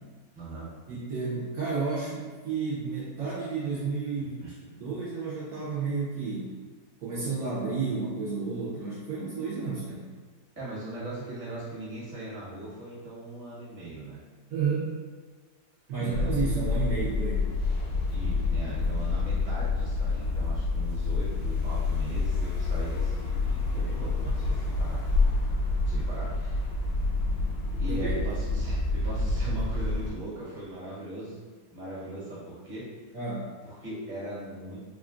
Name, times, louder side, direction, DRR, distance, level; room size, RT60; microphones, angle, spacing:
voice 1, 0.3-0.7 4.2-4.5 10.5-14.2 16.0-16.4 18.1-25.0 25.8-26.6 27.8-31.4 31.7-32.9 33.6-34.8, right 2 dB, 30° right, -9 dB, 1.1 m, -39 dB
voice 2, 0.9-4.3 4.7-6.5 7.0-10.1 14.5-15.0 15.9-17.4 27.9-28.2 33.1-33.5, right 4 dB, 65° right, -8 dB, 0.9 m, -31 dB
sound 1, 16.1-30.1, left 3 dB, 85° left, 1.3 m, -28 dB
3.6 x 2.3 x 2.4 m, 1.5 s
omnidirectional pair, 1.9 m